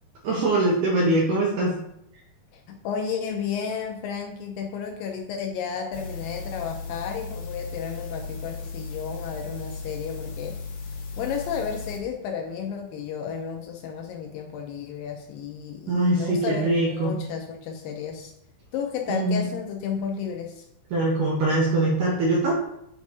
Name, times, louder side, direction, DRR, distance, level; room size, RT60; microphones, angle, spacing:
voice 1, 0.2-1.8 15.9-17.2 19.1-19.4 20.9-22.5, right 2 dB, 75° right, -2 dB, 1.9 m, -22 dB
voice 2, 2.5-10.6 11.2-18.3 18.7-20.6, left 7 dB, 90° left, 2 dB, 1.9 m, -32 dB
sound 1, 5.9-12.0, left 4 dB, 75° left, 1.6 m, -36 dB
7.5 x 2.7 x 4.7 m, 0.79 s
omnidirectional pair, 4.7 m